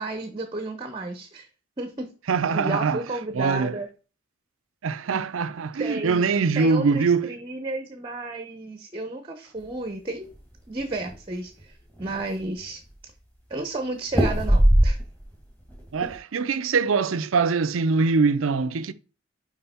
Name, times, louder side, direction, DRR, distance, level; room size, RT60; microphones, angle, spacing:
voice 1, 0.0-1.5 1.8-2.1 2.5-3.9 5.8-6.3 6.5-10.3 10.7-12.8 13.5-15.0, right 2 dB, 25° right, 0.7 m, -32 dB
voice 2, 2.3-3.0 3.3-3.7 4.8-7.3 15.9-18.9, right 4 dB, 75° right, 0.5 m, -23 dB
sound 1, 10.2-11.1 11.6-11.7 12.0-12.6 14.1-15.3 15.7-16.2, right 1 dB, 10° left, 1.9 m, -21 dB
5.6 x 4.7 x 4.2 m
head